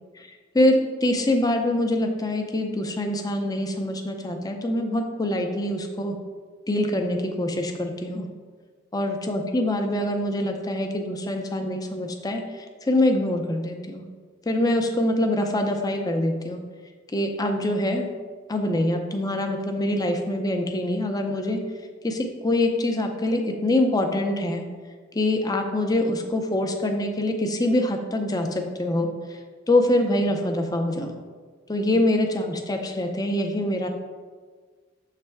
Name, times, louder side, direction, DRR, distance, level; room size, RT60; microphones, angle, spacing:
voice 1, 0.5-6.2 6.7-8.3 8.9-12.4 12.8-14.0 14.5-16.6 17.1-18.1 18.5-21.6 22.0-24.6 25.1-29.1 29.7-31.1 31.7-33.9, left 1 dB, 20° left, 4 dB, 0.5 m, -24 dB
7.0 x 3.3 x 4.6 m, 1.5 s
head